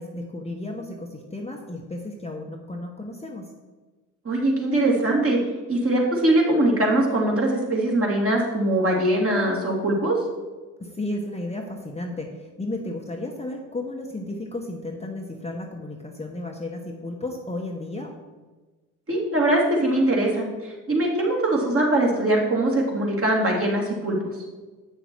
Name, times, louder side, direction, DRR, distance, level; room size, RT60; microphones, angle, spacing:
voice 1, 0.0-3.5 10.8-18.1, left 2 dB, 15° left, 1 dB, 1.1 m, -33 dB
voice 2, 4.2-5.4 5.7-10.2 19.1-24.2, right 1 dB, 35° right, -2 dB, 2.7 m, -22 dB
7.9 x 6.3 x 4.6 m, 1.3 s
hypercardioid pair, 55°, 38 cm